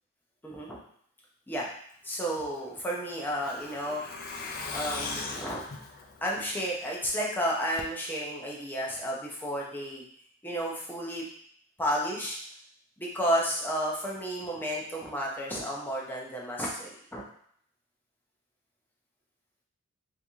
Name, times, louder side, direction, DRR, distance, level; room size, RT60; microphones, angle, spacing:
voice 1, 0.4-0.8 1.5-1.7 2.0-4.0 4.7-5.6 6.2-10.0 10.4-11.2 11.8-12.4 13.0-17.2, equal, 10° left, -4 dB, 0.7 m, -32 dB
Truck, 2.4-7.1 7.4-7.5 7.8-7.9, left 3 dB, 45° left, 0.5 m, -39 dB
3.3 x 2.7 x 3.4 m, 0.63 s
head